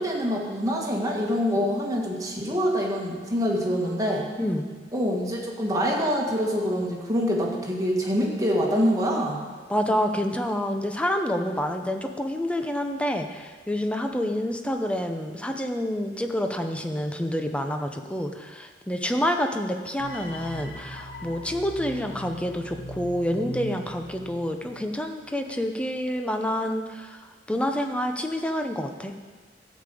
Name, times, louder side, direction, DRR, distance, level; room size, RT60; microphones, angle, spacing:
voice 1, 0.0-4.3 4.9-9.4, equal, 20° right, -2 dB, 1.9 m, -25 dB
voice 2, 4.4-4.7 9.7-29.1, equal, 5° left, 5 dB, 0.8 m, -28 dB
sound 1, 20.0-25.1, left 1 dB, 50° left, 1.5 m, -40 dB
13.0 x 5.3 x 8.4 m, 1.5 s
head